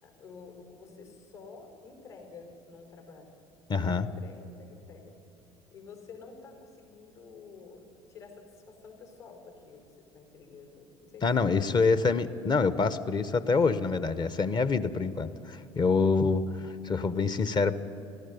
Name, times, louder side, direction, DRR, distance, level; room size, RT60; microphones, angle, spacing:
voice 1, 0.0-3.4 3.7-5.2 5.7-11.8, left 4 dB, 65° left, 3 dB, 5.1 m, -50 dB
voice 2, 3.7-4.1 11.2-17.7, left 4 dB, 30° left, 14 dB, 1.0 m, -26 dB
19.0 x 14.5 x 9.6 m, 2.9 s
figure-of-eight pair, 65°, 15 cm